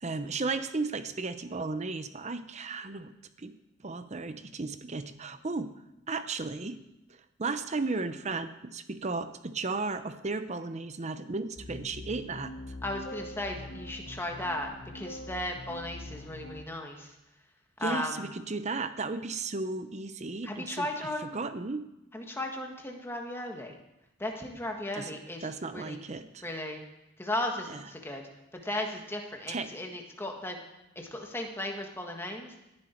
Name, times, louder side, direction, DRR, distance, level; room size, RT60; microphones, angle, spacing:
voice 1, 0.0-3.1 3.4-3.5 3.8-5.7 6.1-6.8 7.1-12.5 17.8-21.8 25.0-25.1 25.4-26.4 27.7-27.8 29.5-29.7, right 3 dB, 35° right, 11 dB, 0.7 m, -35 dB
sound 1, 11.6-16.6, left 1 dB, 45° left, 0.8 m, -43 dB
voice 2, 12.8-17.2 17.8-18.2 20.4-21.4 22.1-23.8 24.2-25.5 25.7-26.0 26.4-26.8 27.2-28.2 28.5-30.6 30.9-32.6, left 1 dB, 10° left, 2 dB, 1.6 m, -36 dB
18.0 x 11.0 x 4.5 m, 0.92 s
head